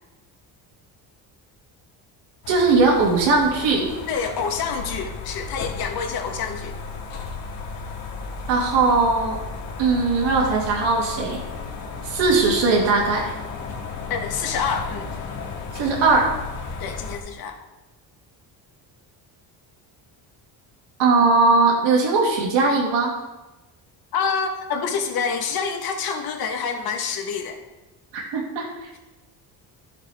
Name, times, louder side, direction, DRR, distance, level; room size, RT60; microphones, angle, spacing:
sound 1, 2.4-17.2, left 4 dB, 85° left, 2.3 m, -34 dB
voice 1, 2.5-3.9 8.5-9.4 9.8-11.4 12.0-13.3 15.7-16.4 21.0-23.1 28.1-28.7, right 3 dB, 80° right, -1 dB, 2.8 m, -19 dB
voice 2, 4.1-6.8 14.1-15.0 16.8-17.6 24.1-27.6, left 6 dB, 55° left, 4 dB, 1.5 m, -27 dB
14.0 x 7.3 x 3.6 m, 1.1 s
cardioid pair, 170°, 42 cm